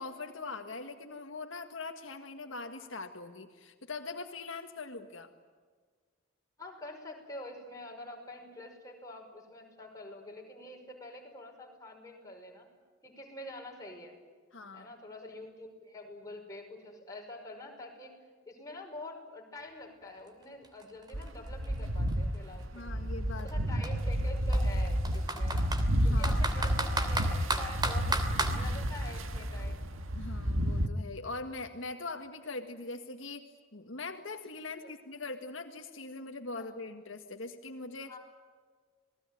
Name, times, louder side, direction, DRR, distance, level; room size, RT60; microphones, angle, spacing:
voice 1, 0.0-5.3 14.5-14.9 22.7-23.5 26.0-26.4 28.2-28.7 30.1-33.5 33.7-38.1, left 3 dB, 70° left, 5 dB, 1.8 m, -42 dB
voice 2, 6.6-12.7 13.0-14.2 14.7-18.1 18.5-23.0 23.4-25.7 26.0-28.2 28.5-29.8 34.8-34.9 36.6-36.7 38.1-38.2, left 1 dB, 15° left, 0 dB, 5.6 m, -46 dB
Computer keyboard, 20.3-20.4 20.6-22.6 23.4-23.5 23.8-23.9 24.5-25.8 26.2-28.6, right 2 dB, 20° right, 3.0 m, -33 dB
sound 1, 21.1-30.9, equal, 85° right, 1.9 m, -31 dB
28.0 x 20.0 x 9.2 m, 1.5 s
head